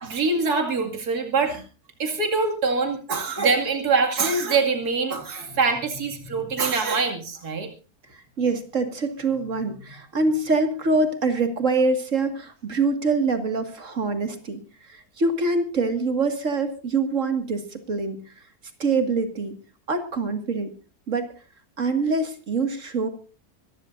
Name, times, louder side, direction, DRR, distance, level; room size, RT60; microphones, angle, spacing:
voice 1, 0.0-1.6 2.0-7.7, right 4 dB, 75° right, 4 dB, 2.8 m, -24 dB
voice 2, 5.4-5.7 8.1-18.3 18.8-19.6 19.9-20.7 21.1-21.3 21.8-23.1, right 3 dB, 50° right, 8 dB, 2.4 m, -25 dB
25.5 x 14.0 x 2.6 m, 0.36 s
omnidirectional pair, 1.7 m